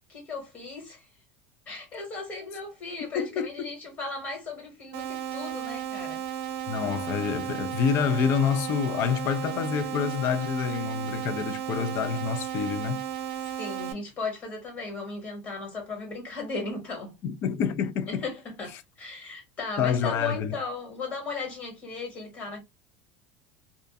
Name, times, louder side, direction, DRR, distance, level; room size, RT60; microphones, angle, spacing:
voice 1, 0.1-1.1 1.7-6.2 13.4-17.1 18.1-22.6, left 4 dB, 30° left, 1.5 m, -36 dB
voice 2, 3.0-3.7 6.7-13.1 17.2-18.2 19.8-20.6, left 7 dB, 45° left, 0.4 m, -27 dB
sound 1, 4.9-13.9, right 10 dB, 65° right, 0.8 m, -34 dB
2.5 x 2.2 x 2.5 m
cardioid pair, 150°, 5 cm